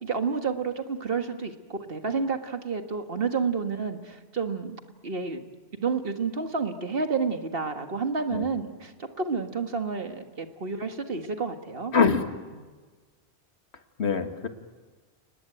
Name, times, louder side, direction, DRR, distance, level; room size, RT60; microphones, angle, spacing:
voice 1, 0.0-4.8 5.0-5.4 5.8-8.9 9.2-11.9 12.5-12.6, right 5 dB, 60° right, 7 dB, 1.8 m, -30 dB
voice 2, 11.9-12.2 14.0-14.5, left 5 dB, 80° left, 8 dB, 1.9 m, -23 dB
30.0 x 19.5 x 9.2 m, 1.4 s
omnidirectional pair, 1.1 m